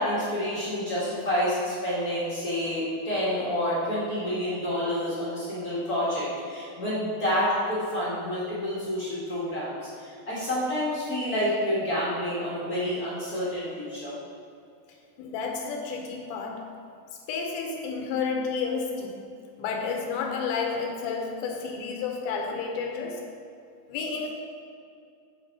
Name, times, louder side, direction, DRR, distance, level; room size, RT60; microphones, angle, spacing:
voice 1, 0.0-14.1, equal, 60° left, -9 dB, 0.9 m, -28 dB
voice 2, 15.2-16.7 17.3-19.3 19.6-23.3 23.9-24.3, left 5 dB, 80° left, 1 dB, 2.7 m, -31 dB
7.7 x 4.7 x 5.1 m, 2.4 s
omnidirectional pair, 4.3 m